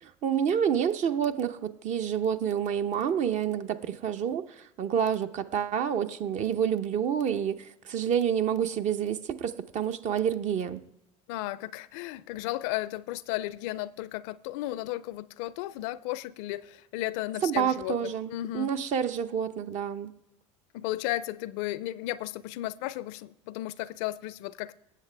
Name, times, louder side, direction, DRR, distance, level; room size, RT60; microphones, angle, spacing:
voice 1, 0.0-10.8 17.4-20.1, right 8 dB, 50° right, 0.9 m, -28 dB
voice 2, 11.3-18.7 20.7-24.8, left 16 dB, 70° left, 0.5 m, -34 dB
18.0 x 7.5 x 3.4 m
hypercardioid pair, 85°, 15 cm